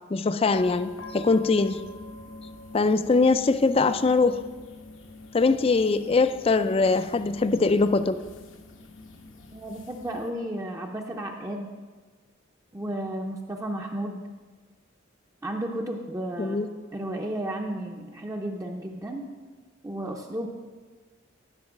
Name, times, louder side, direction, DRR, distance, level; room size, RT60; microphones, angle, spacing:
voice 1, 0.1-1.8 2.7-4.4 5.3-8.2 16.4-16.7, left 3 dB, 30° left, 12 dB, 0.4 m, -22 dB
sound 1, 0.5-10.3, left 2 dB, 75° left, 1.0 m, -45 dB
voice 2, 9.5-11.7 12.7-14.2 15.4-16.6 16.9-19.2 19.8-20.5, right 1 dB, 15° right, 1 dB, 0.6 m, -33 dB
12.5 x 5.3 x 6.1 m, 1.4 s
head